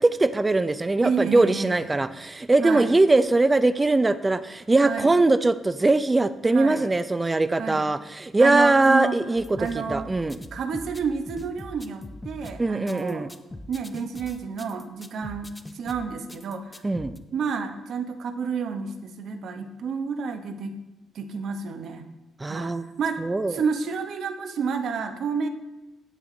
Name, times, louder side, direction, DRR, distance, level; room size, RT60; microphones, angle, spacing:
voice 1, 0.0-9.4 9.7-10.4 12.6-13.3 16.8-17.1 22.4-22.8 23.2-23.5, right 2 dB, 20° right, 12 dB, 0.4 m, -21 dB
voice 2, 1.0-1.9 2.6-2.9 4.8-5.1 6.5-6.9 7.6-7.9 8.4-9.2 9.6-10.1 10.5-13.3 13.7-16.8 17.3-20.8 21.1-22.1 22.5-23.2 23.5-25.5, right 5 dB, 65° right, 7 dB, 0.9 m, -30 dB
sound 1, 9.4-17.2, left 1 dB, 15° left, 0.7 m, -42 dB
10.0 x 8.3 x 3.8 m, 1.0 s
cardioid pair, 90°, 0 cm